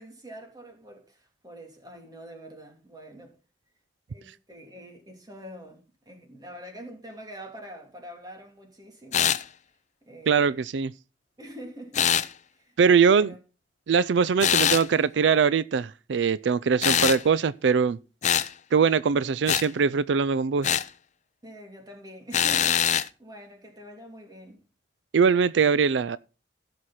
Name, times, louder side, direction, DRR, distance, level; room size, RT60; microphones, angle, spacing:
voice 1, 0.0-3.4 4.1-9.4 10.0-10.6 11.4-12.1 12.5-12.8 13.1-13.4 21.4-24.6, equal, 20° right, 3.0 m, -45 dB
sound 1, 9.1-9.4 11.9-12.3 14.4-14.9 16.8-17.2 18.2-18.5 19.5-19.7 20.6-20.9 22.3-23.1, left 9 dB, 45° left, 0.6 m, -23 dB
voice 2, 10.3-10.9 12.8-13.3 13.9-18.0 18.7-20.8 25.1-26.2, right 6 dB, 90° right, 0.4 m, -22 dB
16.0 x 6.3 x 4.2 m
head